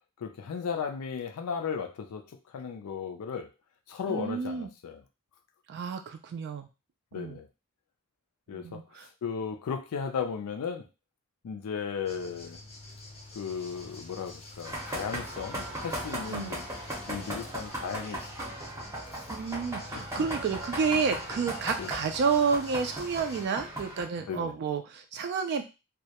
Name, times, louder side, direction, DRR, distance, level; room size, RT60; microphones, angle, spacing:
voice 1, 0.2-2.2 2.5-3.5 3.9-5.0 7.1-7.5 8.5-8.8 9.2-10.9 11.4-12.6 13.3-16.6 17.1-18.5 19.1-19.2 19.9-20.2 21.8-21.9 24.3-24.6, left 6 dB, 85° left, 5 dB, 0.4 m, -35 dB
voice 2, 4.1-4.7 5.7-6.7 7.2-7.4 8.5-9.1 16.3-16.5 19.3-25.6, right 5 dB, 50° right, 6 dB, 0.3 m, -30 dB
sound 1, 12.0-23.5, left 2 dB, 30° left, 0.5 m, -47 dB
sound 2, 14.6-24.0, right 1 dB, 15° right, 0.6 m, -38 dB
2.2 x 2.0 x 2.8 m, 0.28 s
head